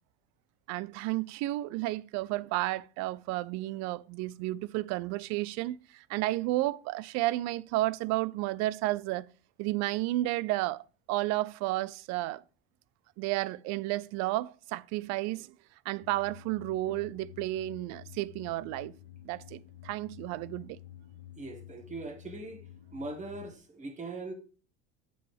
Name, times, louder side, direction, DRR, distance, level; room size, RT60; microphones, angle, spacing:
voice 1, 0.7-9.3 9.6-10.8 11.1-12.4 13.2-15.5 15.9-18.9 19.2-20.8, right 17 dB, 55° right, 0.5 m, -32 dB
sound 1, 16.0-23.6, left 12 dB, 60° left, 0.8 m, -51 dB
voice 2, 21.4-24.3, right 2 dB, 20° right, 1.8 m, -41 dB
8.4 x 6.3 x 3.4 m
supercardioid pair, 105°, 32 cm